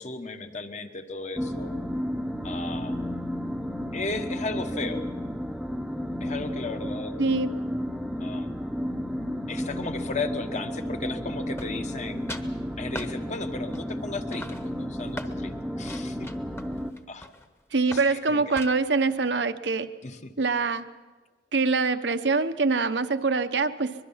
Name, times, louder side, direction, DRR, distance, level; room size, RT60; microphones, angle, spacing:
voice 1, 0.0-1.8 2.4-3.0 3.9-5.0 6.2-7.1 8.2-8.5 9.5-12.2 12.8-16.3 17.1-17.3 17.9-18.5 20.0-20.3, left 3 dB, 45° left, 7 dB, 1.3 m, -35 dB
sound 1, 1.3-16.9, equal, ahead, 0.8 m, -32 dB
voice 2, 7.2-7.5 17.7-19.9 20.4-20.8 21.5-23.9, right 4 dB, 85° right, 9 dB, 0.9 m, -24 dB
sound 2, 11.6-12.0 12.3-12.5 12.9-13.1 13.7-14.0 14.3-15.4 15.9-17.5 17.9-18.1 18.5-19.0, left 1 dB, 15° left, 1.1 m, -40 dB
24.0 x 22.0 x 5.7 m, 1.3 s
head